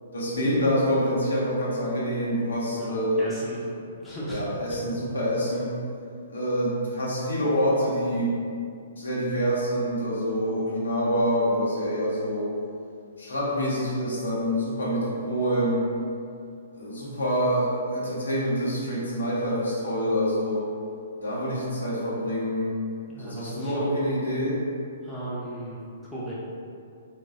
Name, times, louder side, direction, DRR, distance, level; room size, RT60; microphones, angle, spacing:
voice 1, 0.1-3.3 4.3-5.7 6.3-8.3 9.0-12.5 13.2-15.8 16.7-20.6 21.2-22.7 23.2-24.6, equal, 75° left, -7 dB, 0.8 m, -26 dB
voice 2, 2.7-3.6 4.0-4.4 4.7-4.8 23.1-24.1 25.0-25.8 26.1-26.3, right 1 dB, 5° left, -9 dB, 0.6 m, -36 dB
3.1 x 2.0 x 2.4 m, 2.4 s
figure-of-eight pair, 120°, 0 cm